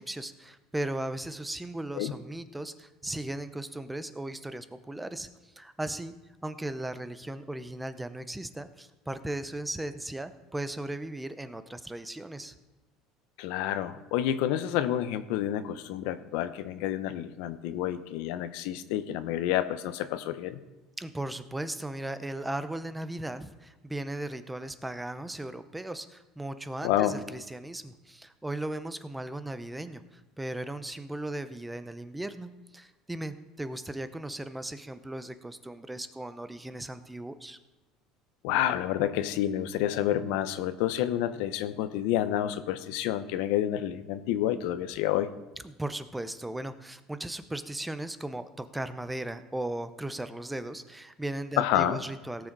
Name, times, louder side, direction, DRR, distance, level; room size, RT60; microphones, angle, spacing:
voice 1, 0.0-6.1 6.4-12.5 21.0-37.6 45.6-52.5, right 1 dB, 5° right, 11 dB, 0.6 m, -37 dB
voice 2, 13.4-20.6 26.8-27.2 38.4-45.3 51.6-52.0, left 12 dB, 75° left, 12 dB, 0.7 m, -29 dB
17.5 x 6.3 x 4.7 m, 1.1 s
cardioid pair, 135°, 0 cm